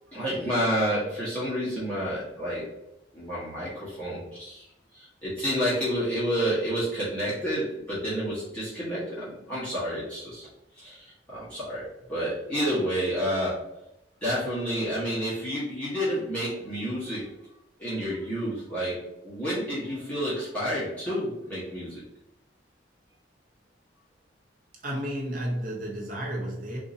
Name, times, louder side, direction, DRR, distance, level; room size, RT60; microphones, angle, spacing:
voice 1, 0.1-2.6 3.1-4.6 4.9-10.5 10.8-13.6 14.2-17.3 17.8-22.0, equal, 5° left, -11 dB, 1.0 m, -30 dB
voice 2, 24.8-26.8, equal, 45° right, -2 dB, 0.9 m, -32 dB
2.6 x 2.5 x 4.0 m, 0.89 s
head